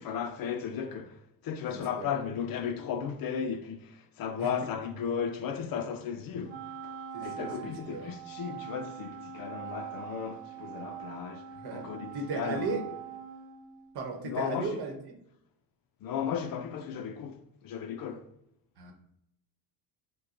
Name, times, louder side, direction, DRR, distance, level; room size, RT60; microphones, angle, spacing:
voice 1, 0.0-6.6 6.8-12.9 14.2-14.8 16.0-18.3, left 7 dB, 50° left, 0.4 m, -35 dB
voice 2, 1.7-2.1 4.4-4.5 7.1-8.1 11.5-11.8 12.1-12.8 13.9-14.9 18.8-18.9, right 4 dB, 55° right, 1.0 m, -36 dB
Wind instrument woodwind instrument, 6.5-14.1, right 8 dB, 85° right, 1.0 m, -43 dB
6.3 x 2.2 x 2.5 m
cardioid pair, 100°, 47 cm